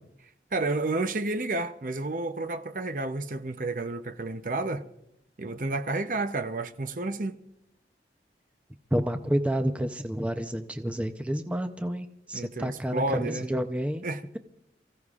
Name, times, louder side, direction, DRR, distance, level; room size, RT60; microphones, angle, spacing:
voice 1, 0.5-4.8 5.4-7.4 12.3-13.5 14.0-14.2, right 2 dB, 50° right, 0.7 m, -30 dB
voice 2, 8.9-14.0, equal, 5° right, 0.6 m, -29 dB
29.5 x 15.5 x 2.4 m
head